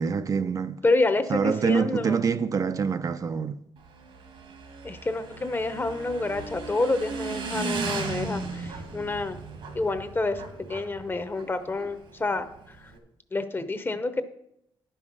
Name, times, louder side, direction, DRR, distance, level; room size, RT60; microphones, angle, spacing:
voice 1, 0.0-0.8 1.3-3.6, right 6 dB, 45° right, 0.4 m, -26 dB
voice 2, 0.8-2.2 4.8-9.4 9.7-12.9 13.3-14.2, left 2 dB, 25° left, 0.8 m, -28 dB
Motorcycle / Engine, 3.8-13.0, right 4 dB, 80° right, 1.8 m, -36 dB
10.5 x 5.6 x 6.0 m
cardioid pair, 90°, 8 cm